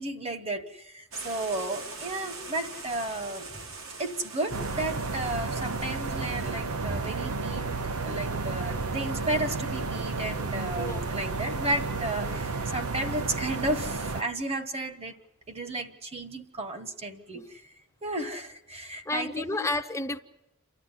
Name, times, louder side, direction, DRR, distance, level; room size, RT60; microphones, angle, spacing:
voice 1, 0.0-3.5 4.0-7.6 8.0-15.2 15.5-17.6 18.0-19.6, right 2 dB, 30° right, 8 dB, 1.4 m, -33 dB
sound 1, 1.1-6.6, right 3 dB, 65° right, 2.3 m, -43 dB
sound 2, 4.5-14.2, right 3 dB, 80° right, 0.9 m, -32 dB
voice 2, 19.1-20.2, left 2 dB, 15° left, 8 dB, 0.7 m, -31 dB
29.5 x 13.0 x 9.9 m, 0.93 s
head